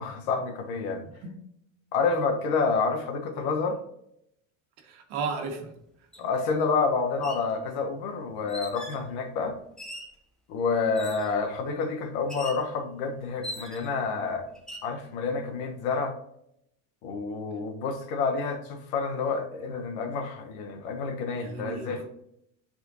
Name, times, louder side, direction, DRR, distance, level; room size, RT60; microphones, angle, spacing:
voice 1, 0.0-1.1 1.9-3.8 6.2-9.6 10.5-14.5 14.8-16.1 17.0-22.1, left 4 dB, 60° left, 4 dB, 1.1 m, -28 dB
voice 2, 4.8-5.7 21.3-22.1, right 5 dB, 60° right, 3 dB, 1.5 m, -34 dB
sound 1, 6.1-6.2 7.1-7.5 8.5-9.0 9.8-10.2 10.9-11.4 12.3-12.7 13.4-14.0 14.5-14.9, equal, ahead, 0.6 m, -41 dB
10.5 x 4.3 x 2.7 m, 0.77 s
cardioid pair, 180°, 38 cm